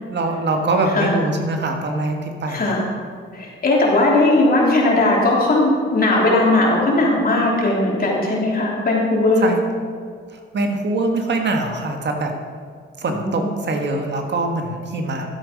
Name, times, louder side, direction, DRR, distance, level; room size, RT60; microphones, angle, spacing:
voice 1, 0.1-2.7 9.4-9.6 10.3-12.3 13.0-15.3, right 2 dB, 55° right, 3 dB, 1.6 m, -23 dB
voice 2, 2.5-2.9 3.3-9.5 13.1-13.5, left 2 dB, 45° left, -3 dB, 3.3 m, -18 dB
12.5 x 8.1 x 5.1 m, 2.1 s
cardioid pair, 75°, 21 cm